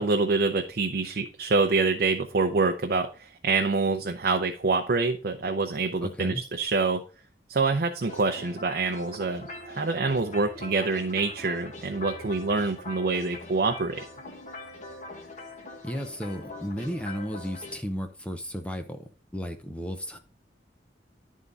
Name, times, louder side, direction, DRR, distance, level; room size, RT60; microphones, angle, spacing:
voice 1, 0.0-7.0 7.5-14.0, right 3 dB, 60° right, 0.6 m, -26 dB
voice 2, 6.0-6.4 15.8-19.0 19.3-20.2, equal, 5° left, 0.6 m, -34 dB
sound 1, 8.0-17.8, left 2 dB, 45° left, 1.4 m, -42 dB
11.0 x 3.7 x 4.0 m
head